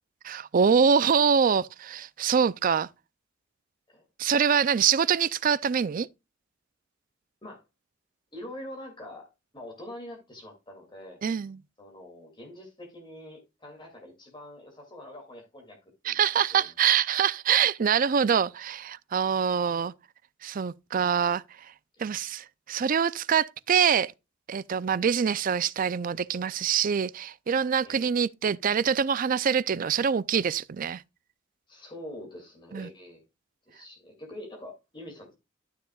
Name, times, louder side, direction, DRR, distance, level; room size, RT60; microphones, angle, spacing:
voice 1, 0.2-2.9 4.2-6.1 11.2-11.6 16.1-19.9 20.4-21.7 22.0-24.1 24.5-31.0 32.7-32.9, right 7 dB, 45° right, 0.4 m, -25 dB
voice 2, 8.3-11.2 11.8-15.8 16.0-16.2 16.5-16.7 24.8-25.0 27.8-28.1 31.7-33.2 33.7-35.4, left 1 dB, 25° left, 2.5 m, -44 dB
12.0 x 6.6 x 2.3 m
head